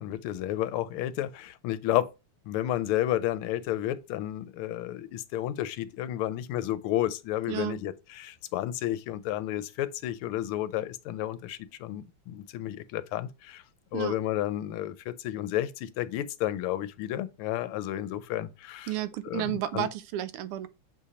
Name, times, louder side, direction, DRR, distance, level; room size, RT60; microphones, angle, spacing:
voice 1, 0.0-2.1 2.5-13.6 13.9-18.9 19.2-19.9, left 13 dB, 80° left, 1.4 m, -31 dB
voice 2, 7.5-7.8 13.9-14.2 18.9-20.7, right 13 dB, 85° right, 1.5 m, -32 dB
6.7 x 2.9 x 4.9 m
omnidirectional pair, 2.4 m